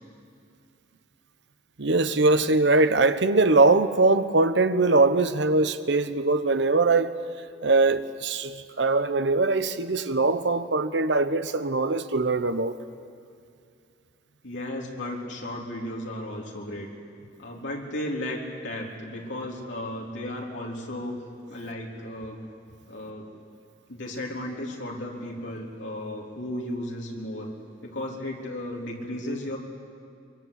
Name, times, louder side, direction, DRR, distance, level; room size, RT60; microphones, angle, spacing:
voice 1, 1.8-7.1 7.6-12.8, right 3 dB, 75° right, 1.0 m, -22 dB
voice 2, 14.4-16.9 17.4-21.2 21.5-22.4 22.9-23.3 23.9-27.5 27.8-29.6, left 1 dB, 85° left, 3.6 m, -34 dB
23.5 x 23.0 x 8.3 m
head